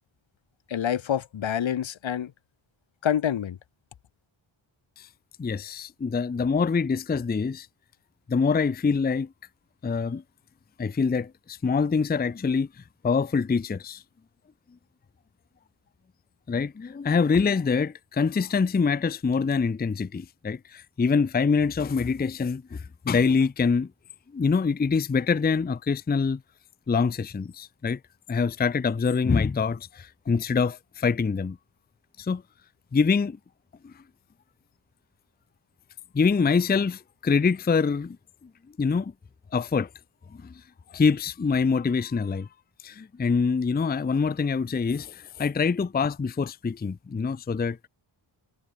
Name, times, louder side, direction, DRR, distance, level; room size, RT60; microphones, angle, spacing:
voice 1, 0.7-2.3 3.0-3.6, left 9 dB, 65° left, 1.0 m, -27 dB
voice 2, 5.4-7.7 8.3-9.3 9.8-10.2 10.8-12.7 13.0-14.0 16.5-23.9 24.3-26.4 26.9-28.0 28.3-31.6 32.2-32.4 32.9-33.4 33.8-33.9 36.1-38.2 38.4-38.5 38.8-39.1 39.5-39.9 40.3-40.5 40.9-42.5 42.8-47.8, left 5 dB, 20° left, 0.5 m, -25 dB
wide cardioid pair, 95°, 49 cm